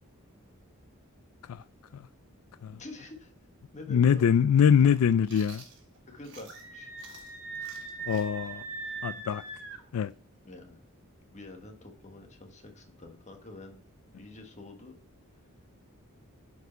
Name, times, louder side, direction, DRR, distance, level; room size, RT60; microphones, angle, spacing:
voice 1, 2.8-3.3 3.7-4.4 4.8-5.0 6.1-6.9 10.4-10.9 11.3-13.8 14.1-15.0, left 2 dB, 35° left, 1.3 m, -47 dB
voice 2, 3.9-5.6 8.1-8.6 9.0-9.4 9.9-10.1, left 7 dB, 90° left, 0.4 m, -23 dB
Chewing mastication, 5.3-6.7 7.0-10.6, right 5 dB, 55° right, 1.7 m, -53 dB
Screaming, 6.5-9.8, right 4 dB, 85° right, 1.8 m, -40 dB
8.1 x 4.8 x 4.4 m
head